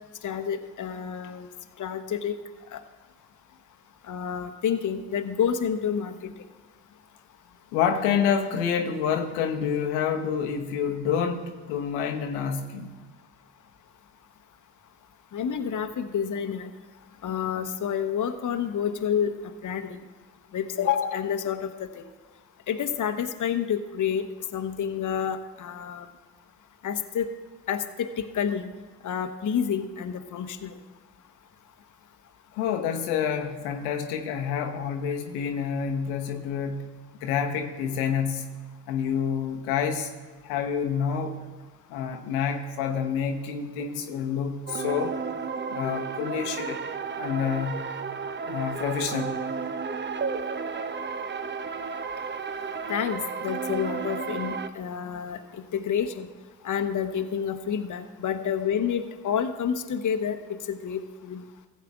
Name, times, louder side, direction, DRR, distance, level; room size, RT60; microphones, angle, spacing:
voice 1, 0.2-1.5 1.8-2.3 2.7-2.8 4.0-6.3 15.3-16.7 17.2-19.3 19.6-20.0 20.5-22.0 22.7-24.3 24.5-26.1 26.8-27.3 27.7-28.7 29.0-30.8 52.9-56.3 56.6-60.4 60.7-61.4, left 8 dB, 45° left, 7 dB, 1.0 m, -29 dB
voice 2, 7.7-12.9 32.5-36.9 37.2-38.5 38.9-40.1 40.4-41.4 41.9-45.1 45.7-46.8 47.2-47.9 48.5-49.4, left 7 dB, 85° left, 3 dB, 0.9 m, -28 dB
sound 1, 44.7-54.7, right 5 dB, 25° right, 0.7 m, -33 dB
15.0 x 7.5 x 3.6 m, 1.4 s
hypercardioid pair, 50°, 44 cm